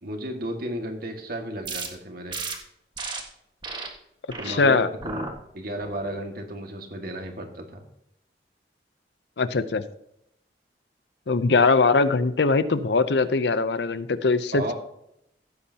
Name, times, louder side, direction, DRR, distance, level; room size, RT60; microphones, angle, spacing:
voice 1, 0.0-2.4 4.4-5.3 5.5-7.8 14.5-14.7, right 1 dB, 55° right, 3 dB, 1.9 m, -33 dB
sound 1, 1.6-1.9 2.3-2.6 3.0-3.2 3.6-3.9 4.3-4.6 5.0-5.3 5.8-6.2, right 4 dB, 25° right, 1.6 m, -33 dB
voice 2, 4.5-4.9 9.4-9.8 11.3-14.7, left 4 dB, 75° left, 13 dB, 0.6 m, -21 dB
16.0 x 8.7 x 2.9 m, 0.79 s
head